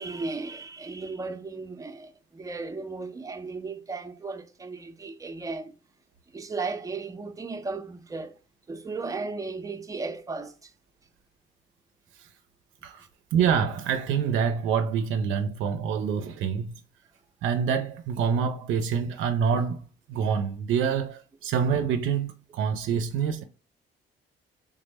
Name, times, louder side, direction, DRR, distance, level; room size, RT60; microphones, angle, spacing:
voice 1, 0.0-5.8 6.3-8.4 8.7-10.7, right 3 dB, 15° right, 0.5 m, -35 dB
voice 2, 12.8-16.7 17.4-19.8 20.1-23.4, right 7 dB, 80° right, 0.4 m, -26 dB
3.4 x 2.0 x 3.3 m
cardioid pair, 90°, 20 cm